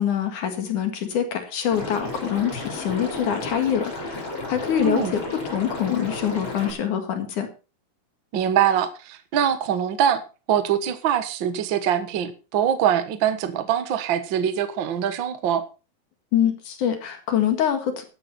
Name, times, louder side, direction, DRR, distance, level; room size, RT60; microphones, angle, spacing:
voice 1, 0.0-5.2 5.5-7.5 16.3-18.0, left 9 dB, 60° left, 6 dB, 3.2 m, -25 dB
Liquid, 1.7-6.7, left 2 dB, 30° left, 5.2 m, -33 dB
voice 2, 4.8-5.1 8.3-10.2 10.5-15.6, right 9 dB, 70° right, 10 dB, 1.1 m, -23 dB
14.0 x 12.0 x 4.2 m, 0.34 s
omnidirectional pair, 4.4 m